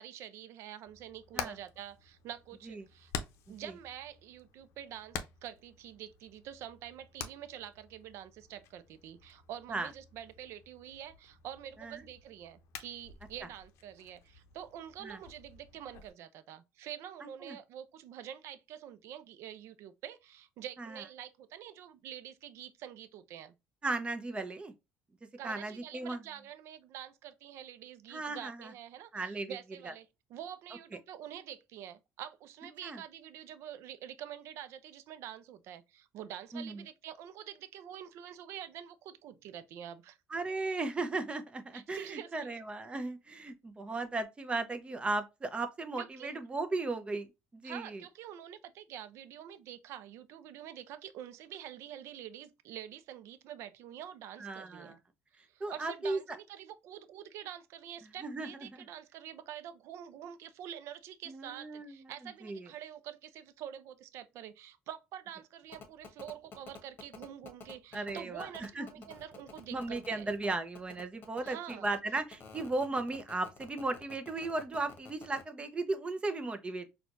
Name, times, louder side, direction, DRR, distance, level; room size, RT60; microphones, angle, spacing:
voice 1, 0.0-3.1 3.5-23.5 25.4-40.2 41.7-42.6 46.0-46.3 47.6-55.0 55.5-70.4 71.4-71.9, right 10 dB, 70° right, 0.5 m, -47 dB
Hammer, 0.9-16.1, left 7 dB, 70° left, 0.6 m, -48 dB
voice 2, 23.8-24.7 25.4-26.2 28.1-28.7 29.1-29.6 29.8-29.9 32.8-33.0 36.5-36.8 40.3-47.3 47.5-48.0 54.4-55.0 55.6-56.2 58.2-58.9 61.3-62.1 62.4-62.7 67.9-68.9 69.7-76.9, right 3 dB, 20° right, 0.6 m, -36 dB
sound 1, 65.7-75.4, left 5 dB, 45° left, 1.0 m, -50 dB
4.3 x 2.3 x 2.5 m
cardioid pair, 100°, 5 cm